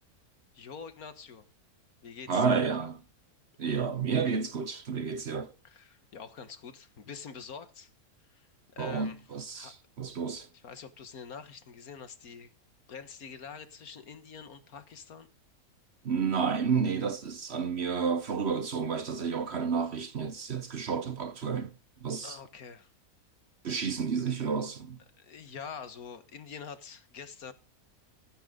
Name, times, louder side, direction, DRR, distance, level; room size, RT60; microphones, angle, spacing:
voice 1, 0.5-1.5 2.0-2.9 5.6-7.9 8.3-9.2 9.5-9.7 10.5-12.5 12.9-15.3 22.2-22.9 25.1-27.5, left 6 dB, 75° left, 1.8 m, -46 dB
voice 2, 2.3-3.0 3.6-5.5 8.8-10.5 16.0-21.7 22.0-22.4 23.6-25.0, right 6 dB, 50° right, 1.1 m, -30 dB
16.0 x 10.0 x 3.8 m
omnidirectional pair, 1.6 m